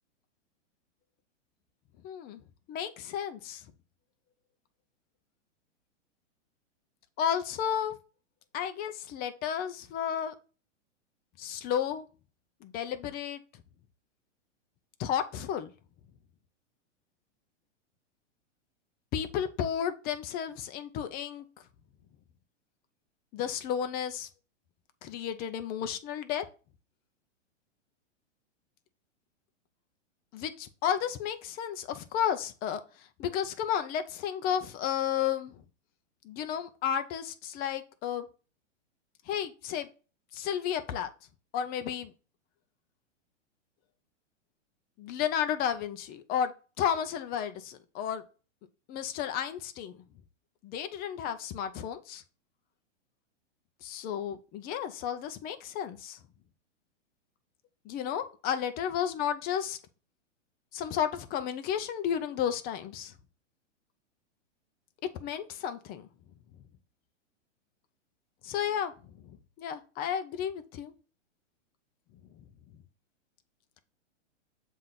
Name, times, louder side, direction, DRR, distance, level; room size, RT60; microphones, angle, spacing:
voice 1, 2.0-2.4 2.7-3.6 7.2-8.0 8.5-10.3 11.4-12.1 12.6-13.4 15.0-15.7 19.1-21.5 23.3-24.3 25.0-26.4 30.3-35.6 36.2-38.3 39.3-39.9 40.3-41.1 41.5-42.1 45.0-48.2 48.9-50.0 50.6-52.2 53.8-56.2 57.8-59.8 60.7-63.1 65.2-66.1 68.4-68.9 69.2-70.9 72.4-72.5, left 9 dB, 25° left, 0.6 m, -32 dB
7.3 x 2.7 x 5.8 m
hypercardioid pair, 130°, 37 cm